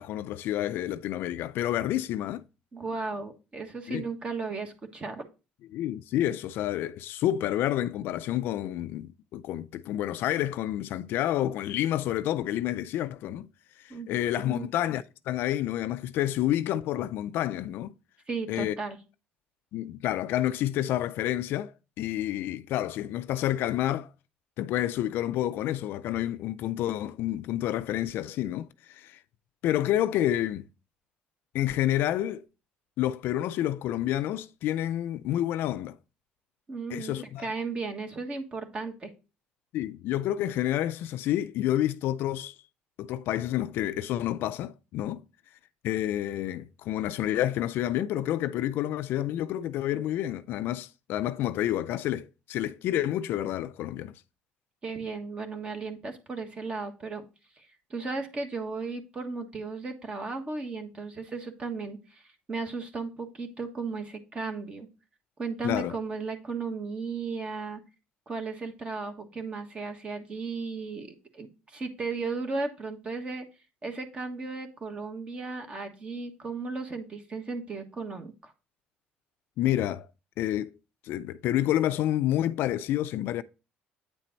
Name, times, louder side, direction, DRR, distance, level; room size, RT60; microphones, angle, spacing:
voice 1, 0.0-2.4 3.9-4.0 5.7-13.5 13.8-17.9 18.5-18.7 19.7-21.7 22.0-24.1 24.6-29.2 29.6-30.6 31.5-32.4 33.0-36.0 36.9-37.5 39.7-42.5 43.0-45.2 45.8-54.2 65.6-65.9 79.6-80.1 80.4-80.7 81.0-83.4, left 13 dB, 65° left, 0.4 m, -29 dB
voice 2, 2.7-5.2 13.9-14.7 18.3-19.0 36.7-37.1 37.4-39.1 54.8-57.2 57.6-62.2 62.5-64.9 65.4-67.8 68.3-73.5 73.8-78.5, right 4 dB, 25° right, 1.4 m, -35 dB
9.1 x 4.4 x 4.0 m
cardioid pair, 145°, 4 cm